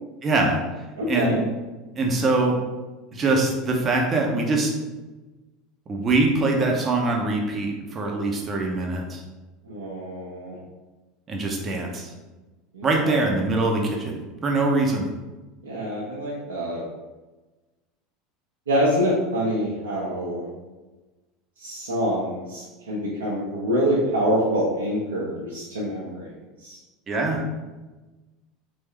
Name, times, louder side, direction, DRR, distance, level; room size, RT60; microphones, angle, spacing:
voice 1, 0.2-0.6 1.1-1.4 2.0-2.6 3.1-4.7 5.9-9.2 11.3-12.1 12.8-15.1 27.1-27.4, right 2 dB, 30° right, 1 dB, 0.9 m, -23 dB
voice 2, 1.0-1.4 9.6-10.6 12.7-13.2 15.6-16.8 18.7-20.5 21.6-26.3 26.6-26.8, equal, 75° right, -7 dB, 0.8 m, -26 dB
3.6 x 3.4 x 3.2 m, 1.2 s
figure-of-eight pair, 75°, 0 cm